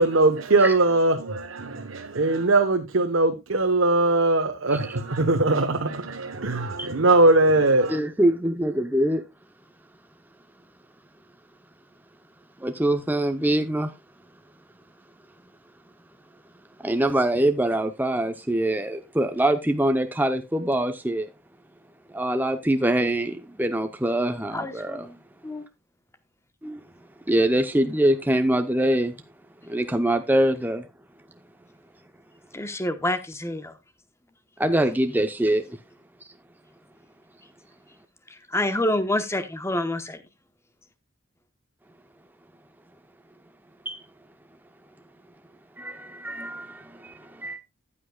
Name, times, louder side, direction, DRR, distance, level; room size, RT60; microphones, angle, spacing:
voice 1, 0.0-8.0, right 2 dB, 70° right, 1.0 m, -21 dB
voice 2, 7.9-9.2 12.6-13.9 16.8-21.3 22.1-25.1 26.6-26.8 27.3-29.1 29.6-30.9 34.6-35.8 43.9-44.0 45.8-47.6, right 1 dB, 10° right, 0.7 m, -24 dB
voice 3, 24.5-25.2 25.4-25.6 32.5-33.7 38.3-40.2, left 1 dB, 15° left, 1.0 m, -27 dB
14.5 x 8.8 x 2.3 m
head